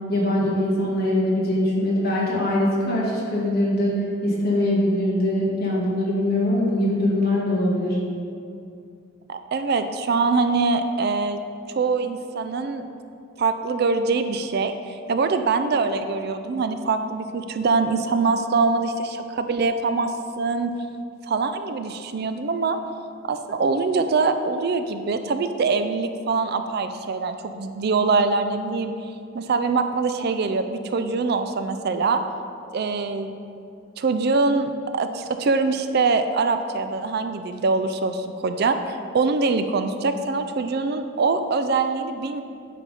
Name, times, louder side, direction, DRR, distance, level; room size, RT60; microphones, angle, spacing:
voice 1, 0.1-8.0, left 1 dB, 50° left, -6 dB, 1.8 m, -22 dB
voice 2, 9.3-11.4 11.7-12.8 13.4-20.1 20.4-20.7 21.3-22.8 23.3-28.9 29.3-32.2 32.7-33.4 34.0-42.4, right 4 dB, 50° right, 8 dB, 0.4 m, -23 dB
9.2 x 3.5 x 5.3 m, 2.5 s
head